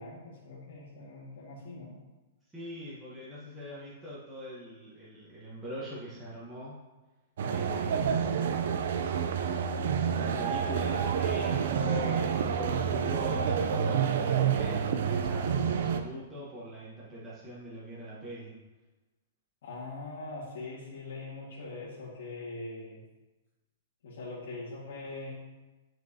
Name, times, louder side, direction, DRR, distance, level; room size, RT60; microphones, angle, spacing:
voice 1, 0.0-2.0 19.6-23.0 24.0-25.3, left 2 dB, 70° left, -9 dB, 1.8 m, -42 dB
voice 2, 2.5-6.8 7.5-8.5 10.1-18.5, equal, 10° right, -9 dB, 1.2 m, -42 dB
sound 1, 7.4-16.0, right 7 dB, 65° right, 0.5 m, -28 dB
9.1 x 4.5 x 2.8 m, 1.1 s
hypercardioid pair, 155°, 0 cm